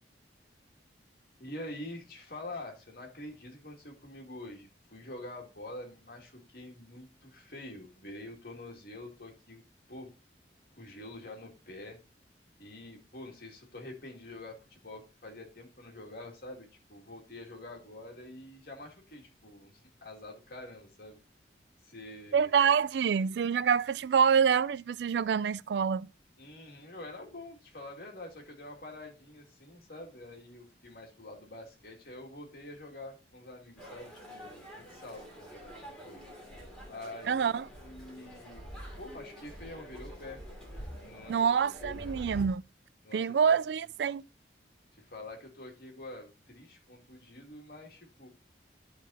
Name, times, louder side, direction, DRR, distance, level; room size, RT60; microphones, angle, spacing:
voice 1, 1.4-9.6 9.9-10.1 10.7-12.0 12.6-21.2 21.8-22.6 26.4-36.2 36.9-37.5 37.8-38.6 39.0-40.4 40.9-41.5 41.8-42.1 43.0-43.8 44.9-48.3, left 1 dB, 55° left, 2.5 m, -46 dB
voice 2, 22.3-26.1 37.3-37.7 41.3-42.6 43.1-44.2, right 7 dB, 70° right, 0.3 m, -26 dB
sound 1, 33.8-42.5, equal, 5° left, 2.7 m, -46 dB
12.0 x 4.3 x 4.1 m
head